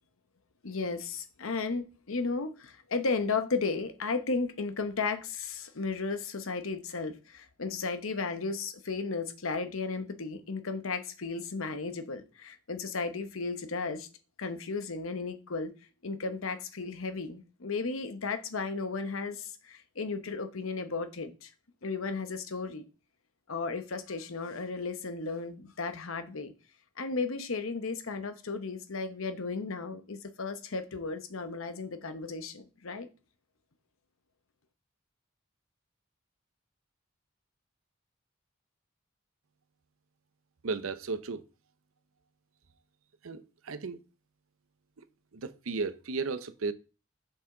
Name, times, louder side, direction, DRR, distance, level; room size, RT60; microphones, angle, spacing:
voice 1, 0.6-14.1 14.4-15.7 16.0-21.5 21.8-22.8 23.5-26.5 27.0-33.1, left 4 dB, 80° left, 0.9 m, -34 dB
voice 2, 40.6-41.4 43.2-44.0 45.0-45.1 45.3-46.7, right 4 dB, 85° right, 0.6 m, -34 dB
6.9 x 5.5 x 3.8 m
head